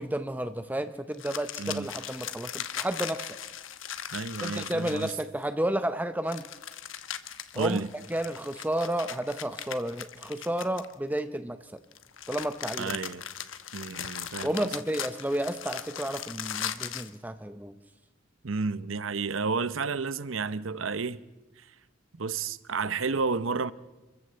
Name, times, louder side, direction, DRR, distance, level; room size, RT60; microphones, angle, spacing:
voice 1, 0.0-3.4 4.4-6.4 7.5-7.8 8.1-11.7 12.3-13.0 14.4-17.8, right 1 dB, 10° right, 0.7 m, -31 dB
sound 1, 1.1-5.4 6.3-11.2 11.9-17.1, left 9 dB, 80° left, 1.1 m, -39 dB
voice 2, 1.6-1.9 4.1-5.1 7.5-7.9 12.8-13.2 13.7-14.7 18.4-21.2 21.6-21.7 22.2-23.7, right 4 dB, 85° right, 0.8 m, -31 dB
26.5 x 14.5 x 7.7 m
head